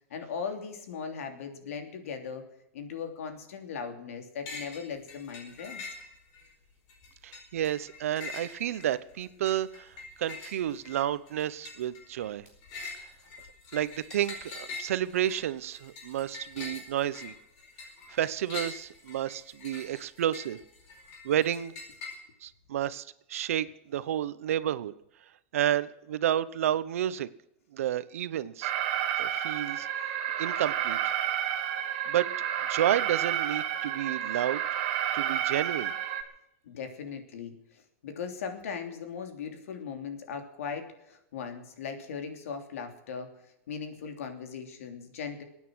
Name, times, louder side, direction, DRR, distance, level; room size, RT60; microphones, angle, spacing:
voice 1, 0.1-2.5 2.7-5.9 36.6-43.4 43.7-45.4, left 6 dB, 90° left, 5 dB, 3.0 m, -38 dB
sound 1, 4.5-4.8 5.1-6.5 6.9-22.1, left 4 dB, 35° left, 4.7 m, -44 dB
voice 2, 7.2-12.5 13.7-17.3 18.1-20.6 21.2-21.7 22.4-24.9 25.5-27.3 27.7-28.7 29.2-30.1 30.4-31.0 32.1-32.3 32.7-34.6 35.1-35.9, right 11 dB, 85° right, 16 dB, 0.9 m, -31 dB
Alarm, 28.6-36.2, right 10 dB, 40° right, 1.5 m, -30 dB
23.0 x 9.3 x 6.3 m, 0.82 s
supercardioid pair, 180°, 7 cm